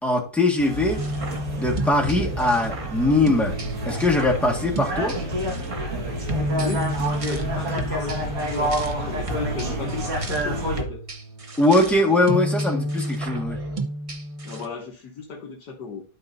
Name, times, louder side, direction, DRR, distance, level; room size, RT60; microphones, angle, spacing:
voice 1, 0.0-1.0 1.6-3.5 3.8-5.2 11.6-13.6, left 2 dB, ahead, -2 dB, 1.4 m, -21 dB
sound 1, 0.6-10.8, right 1 dB, 50° right, 2.1 m, -29 dB
sound 2, 1.0-14.7, right 1 dB, 30° right, 0.7 m, -31 dB
voice 2, 6.6-11.0 14.4-16.0, left 5 dB, 65° left, -1 dB, 1.7 m, -35 dB
12.0 x 5.3 x 2.7 m, 0.40 s
omnidirectional pair, 1.9 m